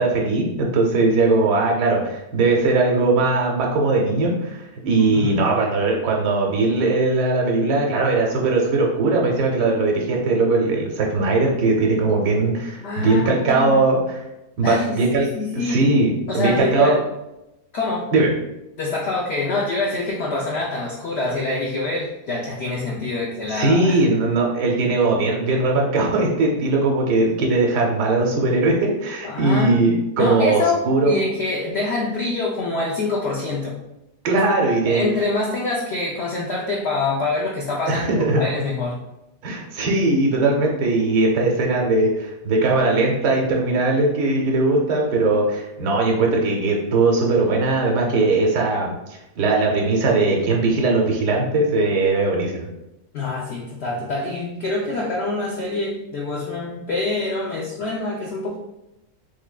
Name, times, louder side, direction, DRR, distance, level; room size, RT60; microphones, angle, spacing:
voice 1, 0.0-14.2 14.6-15.3 15.5-17.0 18.1-18.3 23.5-31.1 34.2-35.1 37.9-38.4 39.4-48.9 49.4-52.7, right 3 dB, 90° right, -1 dB, 1.2 m, -19 dB
voice 2, 12.8-13.8 14.6-15.0 15.3-15.9 16.3-17.0 17.7-18.1 18.8-24.0 29.2-29.8 30.2-33.8 34.3-34.4 34.9-39.0 53.1-58.6, left 3 dB, 85° left, -3 dB, 0.5 m, -25 dB
3.6 x 3.2 x 2.2 m, 0.91 s
omnidirectional pair, 1.7 m